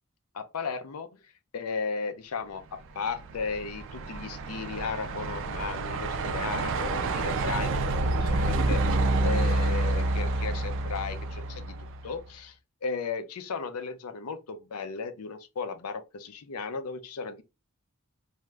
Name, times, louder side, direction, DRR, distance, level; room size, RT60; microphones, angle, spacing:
voice 1, 0.3-1.2 1.5-12.6 12.8-17.4, left 5 dB, 80° left, 0.5 m, -35 dB
Truck, 2.8-12.2, right 2 dB, 60° right, 0.4 m, -28 dB
2.6 x 2.3 x 3.2 m
head